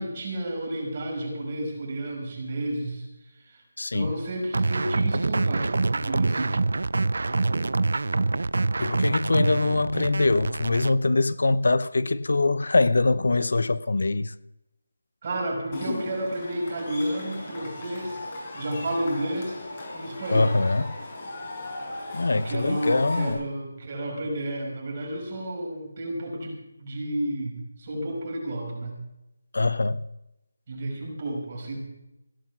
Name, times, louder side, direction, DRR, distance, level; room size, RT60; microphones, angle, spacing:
voice 1, 0.0-3.6 3.9-6.6 15.2-19.7 19.9-20.6 22.3-29.0 30.7-31.8, right 1 dB, 30° right, 5.6 m, -31 dB
voice 2, 3.8-4.1 8.8-14.3 20.3-20.9 22.1-23.4 29.5-30.0, left 3 dB, 70° left, 0.7 m, -23 dB
sound 1, 4.5-10.9, right 3 dB, 70° right, 0.5 m, -25 dB
Cheering / Crowd, 15.7-23.3, left 2 dB, 30° left, 6.1 m, -37 dB
17.0 x 11.5 x 6.1 m
figure-of-eight pair, 170°, 0 cm